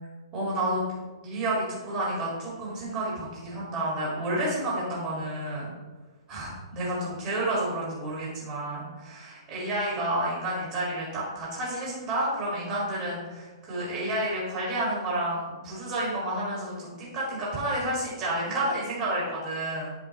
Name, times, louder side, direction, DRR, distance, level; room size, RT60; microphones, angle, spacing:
voice 1, 0.3-0.8 1.2-5.7 6.3-19.9, right 1 dB, 15° right, -5 dB, 1.8 m, -30 dB
11.0 x 4.1 x 2.9 m, 1.3 s
hypercardioid pair, 175°, 3 cm